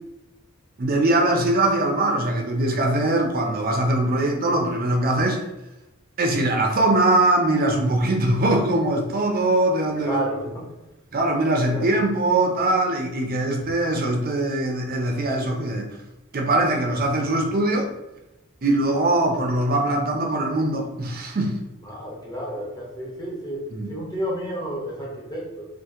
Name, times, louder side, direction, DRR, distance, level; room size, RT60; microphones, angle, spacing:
voice 1, 0.8-5.4 6.2-10.3 11.1-15.9 16.3-17.9 18.6-21.6 23.7-23.9, right 2 dB, 40° right, 3 dB, 0.5 m, -22 dB
voice 2, 9.9-10.7 11.7-11.9 21.8-25.7, right 1 dB, 20° left, -3 dB, 0.8 m, -31 dB
2.9 x 2.5 x 3.6 m, 0.96 s
head